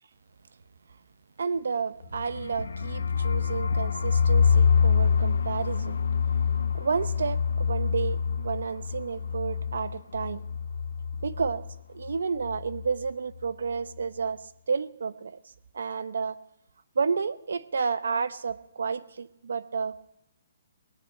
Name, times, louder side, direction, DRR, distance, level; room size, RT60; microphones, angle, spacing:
voice 1, 1.4-6.0 6.5-10.4 11.2-11.6 11.9-14.4 14.7-15.4 15.7-16.4 17.0-20.1, right 5 dB, 70° right, 0.8 m, -31 dB
sound 1, 2.0-11.8 12.0-12.1 12.4-12.9, left 6 dB, 75° left, 0.6 m, -26 dB
18.5 x 9.0 x 8.5 m
hypercardioid pair, 180°, 0 cm